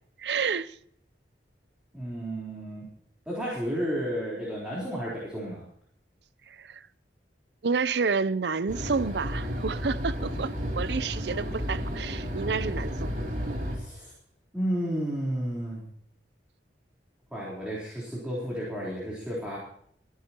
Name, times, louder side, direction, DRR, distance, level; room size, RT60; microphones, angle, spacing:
voice 1, 0.2-0.8 6.5-6.9 7.6-13.2 13.4-13.6, right 5 dB, 70° right, 0.6 m, -30 dB
voice 2, 1.9-2.9 3.3-5.6 13.7-14.1 14.5-15.8 17.3-19.6, equal, 5° right, 3.9 m, -32 dB
sound 1, 8.7-13.8, equal, 45° right, 3.7 m, -32 dB
27.0 x 10.5 x 3.0 m
head